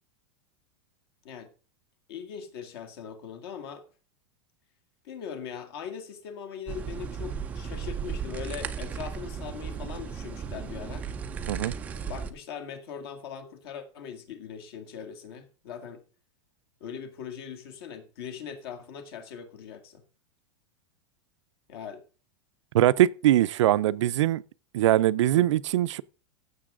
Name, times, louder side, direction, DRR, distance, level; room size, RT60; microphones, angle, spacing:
voice 1, 2.1-3.8 5.0-11.0 12.1-16.0 16.8-20.0 21.7-22.0 25.1-25.5, left 7 dB, 50° left, 2.2 m, -40 dB
sound 1, 6.7-12.3, right 6 dB, 10° right, 0.4 m, -35 dB
voice 2, 22.7-24.4 24.7-26.0, right 13 dB, 70° right, 0.5 m, -22 dB
15.0 x 7.0 x 3.7 m
supercardioid pair, 175°, 16 cm